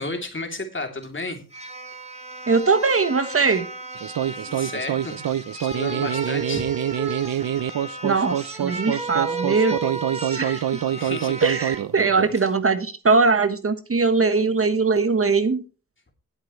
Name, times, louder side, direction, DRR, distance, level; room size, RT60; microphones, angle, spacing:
voice 1, 0.0-1.4 4.4-5.2 5.6-6.7 11.0-11.6, left 2 dB, 35° left, 4 dB, 2.9 m, -32 dB
sound 1, 1.0-1.1 1.5-11.9 12.3-12.5, right 2 dB, 20° right, 2.8 m, -34 dB
voice 2, 2.5-3.7 8.0-10.6 11.4-15.6, right 4 dB, 40° right, 10 dB, 1.2 m, -21 dB
sound 2, 3.9-12.4, right 10 dB, 90° right, 0.6 m, -26 dB
19.5 x 7.9 x 3.1 m, 0.34 s
wide cardioid pair, 110°, 33 cm